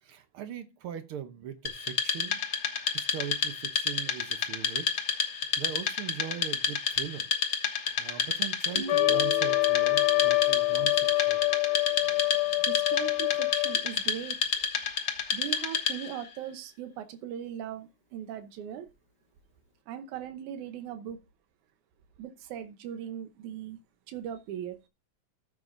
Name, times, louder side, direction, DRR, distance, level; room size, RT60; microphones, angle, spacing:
voice 1, 0.0-2.4 2.9-4.9 5.2-7.3 8.0-11.5, right 10 dB, 70° right, 1.4 m, -40 dB
Wood, 1.7-16.2, left 7 dB, 50° left, 1.4 m, -30 dB
Guitar, 8.7-12.7, equal, 30° right, 1.0 m, -42 dB
Trumpet, 8.9-13.9, left 23 dB, 70° left, 1.7 m, -26 dB
voice 2, 12.6-14.8 15.3-18.9 19.9-21.2 22.2-23.8 24.1-24.8, right 10 dB, 85° right, 2.4 m, -39 dB
14.0 x 7.3 x 2.6 m
omnidirectional pair, 3.3 m